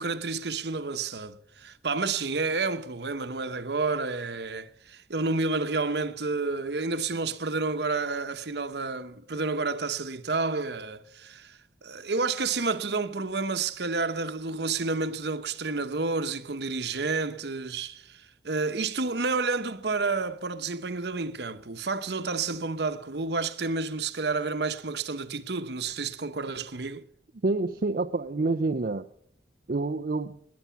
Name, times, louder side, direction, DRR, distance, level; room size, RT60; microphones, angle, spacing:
voice 1, 0.0-27.0, right 3 dB, 70° right, 1.0 m, -30 dB
voice 2, 27.4-29.1 29.7-30.4, right 3 dB, 50° right, 0.5 m, -27 dB
19.5 x 9.5 x 5.8 m
head